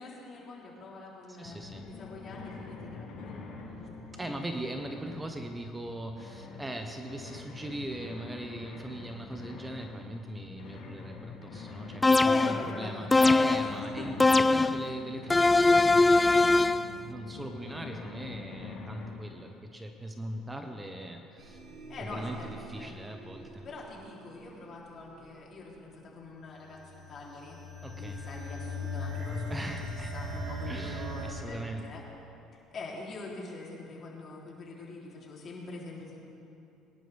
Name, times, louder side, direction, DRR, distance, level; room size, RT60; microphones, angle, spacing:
voice 1, 0.0-3.5 12.2-14.1 14.8-15.0 21.9-22.5 22.8-22.9 23.6-27.6 28.0-29.7 30.1-32.0 32.5-36.2, left 3 dB, 45° left, -3 dB, 3.6 m, -44 dB
voice 2, 1.3-1.9 4.1-16.5 17.1-21.6 22.0-23.7 27.8-28.2 29.5-30.1 30.7-31.8, right 1 dB, 15° right, 5 dB, 1.2 m, -40 dB
sound 1, 1.4-19.1, left 4 dB, 70° left, 2.9 m, -45 dB
sound 2, 12.0-12.7 13.1-13.7 14.2-14.8 15.3-16.9, left 3 dB, 15° left, 0.3 m, -21 dB
sound 3, 21.4-31.3, left 1 dB, 60° right, 3.5 m, -40 dB
22.5 x 11.0 x 3.6 m, 2.7 s
supercardioid pair, 75°, 0 cm